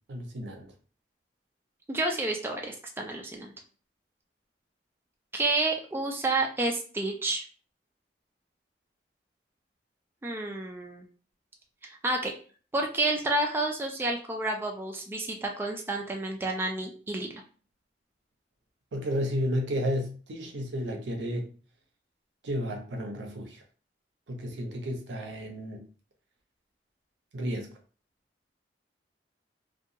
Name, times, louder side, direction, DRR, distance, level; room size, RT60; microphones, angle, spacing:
voice 1, 0.1-0.7 18.9-21.5 22.4-23.6 24.3-25.9 27.3-27.7, equal, 75° right, 0.6 m, -32 dB
voice 2, 1.9-3.5 5.3-7.4 10.2-11.0 11.8-12.3 12.7-17.4, right 2 dB, 15° right, 0.3 m, -30 dB
2.8 x 2.3 x 2.5 m
head